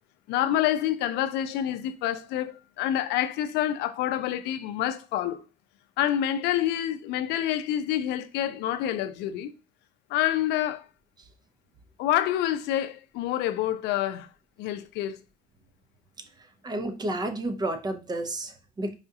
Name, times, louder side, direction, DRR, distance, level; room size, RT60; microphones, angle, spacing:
voice 1, 0.3-5.4 6.0-9.5 10.1-10.9 12.0-14.3 14.6-15.2, left 12 dB, 85° left, 0.4 m, -27 dB
voice 2, 16.6-18.9, right 1 dB, 25° right, 0.6 m, -31 dB
4.8 x 2.3 x 2.7 m
cardioid pair, 110°, 17 cm